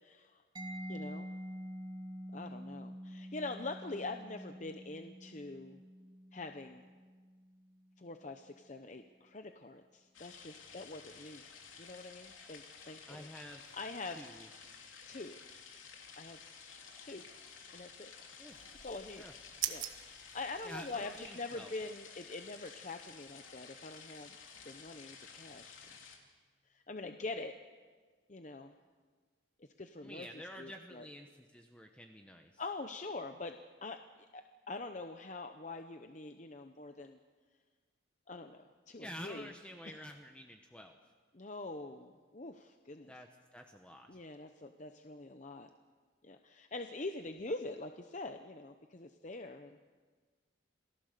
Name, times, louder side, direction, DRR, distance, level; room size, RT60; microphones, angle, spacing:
voice 1, 0.0-0.4 0.9-1.3 2.3-5.8 6.3-6.8 8.0-11.4 11.8-13.3 13.7-14.2 15.1-15.4 16.2-16.4 17.0-17.2 17.7-18.1 18.8-19.2 19.7-24.4 24.6-25.8 26.7-27.5 28.3-28.7 29.6-31.1 32.6-34.0 34.3-37.2 38.3-39.5 39.8-40.0 41.3-43.1 44.1-45.7 46.2-49.8, left 3 dB, 40° left, 7 dB, 0.8 m, -44 dB
Mallet percussion, 0.6-8.1, equal, 20° right, 2.4 m, -47 dB
sound 1, 10.1-26.2, left 6 dB, 85° left, 3.1 m, -53 dB
voice 2, 13.1-13.7 14.0-14.5 18.4-18.6 19.2-19.3 20.6-21.7 30.0-32.6 39.0-41.0 43.1-44.1, equal, 5° left, 3 dB, 1.1 m, -49 dB
sound 2, 18.5-21.3, right 11 dB, 85° right, 1.3 m, -43 dB
28.0 x 18.0 x 6.8 m, 1.5 s
head